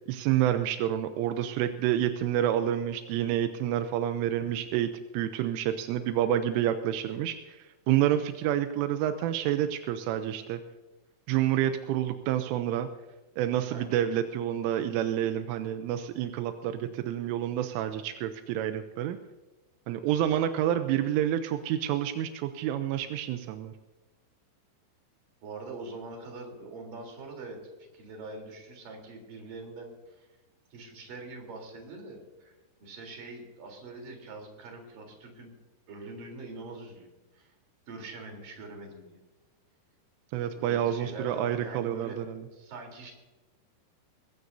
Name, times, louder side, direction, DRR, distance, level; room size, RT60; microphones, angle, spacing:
voice 1, 0.1-10.6 11.3-12.9 13.4-19.2 19.9-23.7 40.3-42.4, right 11 dB, 85° right, 8 dB, 3.3 m, -28 dB
voice 2, 25.4-30.3 30.7-32.5 32.8-35.5 35.9-37.5 37.9-39.2 40.5-42.2 42.5-43.1, right 3 dB, 45° right, 2 dB, 5.0 m, -43 dB
21.0 x 16.0 x 2.7 m, 1.2 s
omnidirectional pair, 5.6 m